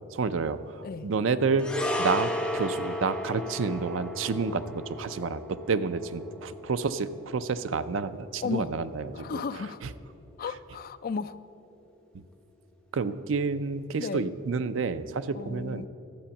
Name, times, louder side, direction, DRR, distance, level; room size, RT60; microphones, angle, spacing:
voice 1, 0.1-1.7 2.0-9.4 9.8-9.9 12.1-12.2 12.9-15.9, right 4 dB, 70° right, 13 dB, 0.5 m, -29 dB
sound 1, 1.6-10.1 10.3-10.5, left 1 dB, 5° left, 0.7 m, -35 dB
voice 2, 8.4-8.8 9.1-9.9 10.4-11.4 14.0-14.3 15.3-15.9, left 5 dB, 45° left, 14 dB, 0.3 m, -34 dB
11.5 x 7.9 x 7.0 m, 2.8 s
head